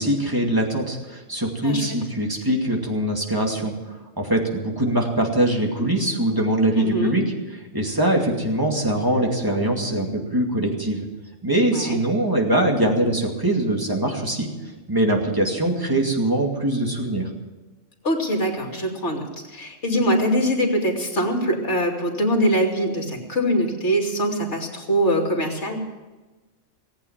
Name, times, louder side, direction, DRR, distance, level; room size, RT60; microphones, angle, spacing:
voice 1, 0.0-7.2 7.7-11.1 11.4-14.5 14.9-17.3, right 1 dB, 15° right, 1 dB, 2.4 m, -22 dB
voice 2, 1.6-2.0 6.8-7.2 11.7-12.0 18.0-25.8, equal, 65° left, 2 dB, 3.0 m, -23 dB
18.5 x 8.7 x 8.9 m, 1.2 s
omnidirectional pair, 1.3 m